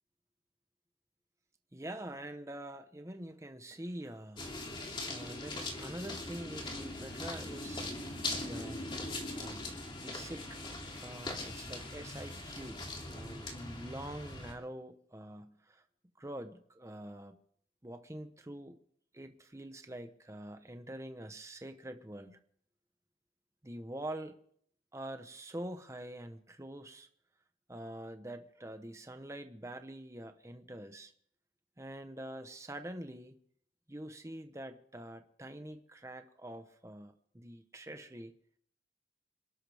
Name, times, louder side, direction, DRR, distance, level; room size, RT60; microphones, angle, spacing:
voice 1, 1.7-4.5 5.1-7.9 8.2-8.8 9.4-9.7 10.0-10.6 11.0-12.8 13.1-15.8 16.2-17.4 17.8-18.8 19.1-22.4 23.6-24.4 24.9-27.1 27.7-31.1 31.8-33.4 33.9-38.3, right 1 dB, 15° right, 7 dB, 1.0 m, -45 dB
sound 1, 4.4-14.5, left 2 dB, 30° left, 2.8 m, -41 dB
28.0 x 12.5 x 3.5 m, 0.66 s
head